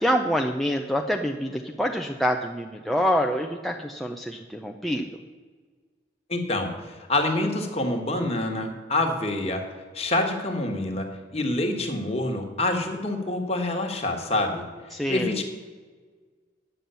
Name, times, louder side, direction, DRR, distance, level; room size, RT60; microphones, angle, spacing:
voice 1, 0.0-5.1 14.9-15.4, equal, ahead, 2 dB, 0.5 m, -26 dB
voice 2, 6.3-9.6 9.9-14.7 15.1-15.4, left 2 dB, 35° left, 3 dB, 1.5 m, -26 dB
10.0 x 7.7 x 6.8 m, 1.5 s
head